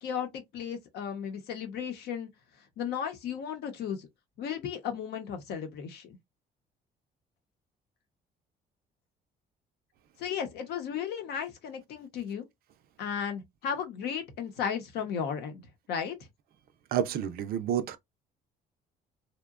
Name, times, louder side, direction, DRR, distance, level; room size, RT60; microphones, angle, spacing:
voice 1, 0.0-2.3 2.8-4.1 4.4-6.2 10.2-12.4 13.0-15.6 15.9-16.2, left 7 dB, 75° left, 0.8 m, -35 dB
voice 2, 16.9-18.0, right 9 dB, 65° right, 0.4 m, -29 dB
2.8 x 2.2 x 2.3 m
cardioid pair, 110°, 17 cm